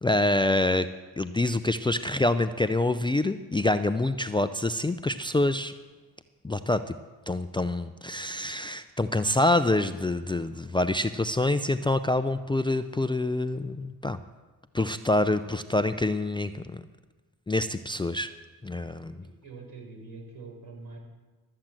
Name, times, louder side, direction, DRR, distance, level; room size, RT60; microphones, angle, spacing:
voice 1, 0.0-0.9 1.2-5.7 6.4-6.9 7.3-14.2 14.7-16.8 17.5-18.3 18.6-19.1, left 2 dB, 10° left, 11 dB, 0.5 m, -26 dB
voice 2, 19.2-21.0, right 3 dB, 65° right, 1 dB, 4.8 m, -44 dB
13.5 x 7.6 x 7.6 m, 1.3 s
supercardioid pair, 60°, 39 cm